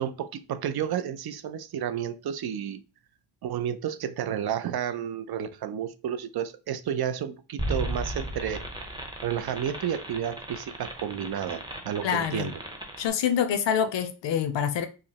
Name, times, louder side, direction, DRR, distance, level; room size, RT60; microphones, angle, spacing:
voice 1, 0.0-2.8 3.4-8.9 9.2-12.6, right 9 dB, 60° right, 0.5 m, -31 dB
sound 1, 7.6-13.1, right 1 dB, 10° right, 0.6 m, -36 dB
voice 2, 12.0-12.5 13.0-14.9, left 8 dB, 75° left, 0.7 m, -26 dB
4.8 x 2.1 x 2.9 m
wide cardioid pair, 125°, 44 cm